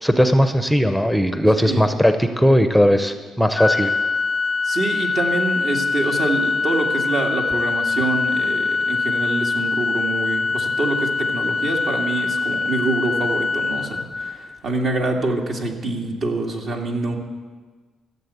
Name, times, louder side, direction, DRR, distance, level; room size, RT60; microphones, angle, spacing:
voice 1, 0.0-3.9, equal, ahead, 8 dB, 0.7 m, -18 dB
Organ, 3.6-14.6, left 4 dB, 25° left, 0.4 m, -23 dB
voice 2, 4.6-17.2, right 2 dB, 60° right, 1 dB, 2.2 m, -25 dB
14.5 x 7.5 x 8.2 m, 1.4 s
cardioid pair, 90°, 0 cm